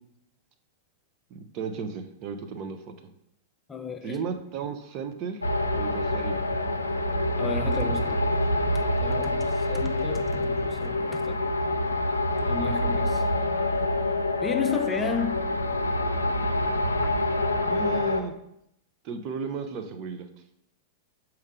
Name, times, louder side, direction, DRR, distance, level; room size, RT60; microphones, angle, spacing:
voice 1, 1.3-2.9 4.0-5.4 5.7-6.4 17.6-18.3 19.0-20.3, right 5 dB, 40° right, 0.7 m, -34 dB
voice 2, 3.7-4.2 7.2-8.3 8.7-11.4 12.5-13.3 14.4-15.4 17.0-17.2, left 6 dB, 20° left, 0.5 m, -33 dB
sound 1, 5.4-18.2, left 1 dB, 85° left, 0.5 m, -26 dB
6.4 x 4.5 x 3.7 m
figure-of-eight pair, 95°, 0 cm